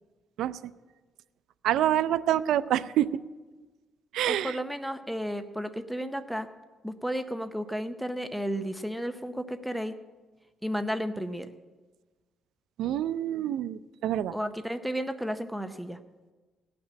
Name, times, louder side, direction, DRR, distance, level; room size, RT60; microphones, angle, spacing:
voice 1, 1.6-3.1 4.1-4.5 12.8-14.3, right 12 dB, 85° right, 14 dB, 0.4 m, -26 dB
voice 2, 4.2-6.5 6.8-10.0 10.6-11.5 14.3-16.0, equal, ahead, 8 dB, 0.6 m, -33 dB
18.0 x 6.1 x 8.6 m, 1.3 s
cardioid pair, 110°, 0 cm